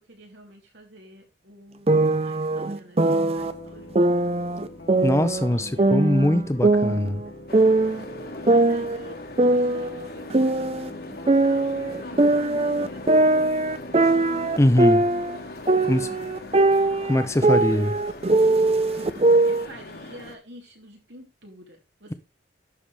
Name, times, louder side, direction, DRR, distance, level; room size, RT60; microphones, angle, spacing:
voice 1, 0.1-3.9 5.5-6.7 8.3-14.2 15.7-17.0 19.4-22.1, right 1 dB, 75° right, 3.4 m, -48 dB
sound 1, 1.9-3.5 4.0-5.5 5.8-8.0 8.5-10.9 11.3-15.4 15.7-19.7, right 2 dB, 35° right, 0.5 m, -21 dB
sound 2, 3.4-20.1, left 1 dB, 70° left, 1.8 m, -44 dB
voice 2, 5.0-7.2 14.6-15.0 15.9-16.1 17.1-17.9, left 1 dB, 15° left, 0.6 m, -22 dB
sound 3, 7.5-20.4, left 2 dB, 55° left, 1.5 m, -40 dB
11.0 x 7.0 x 3.4 m
head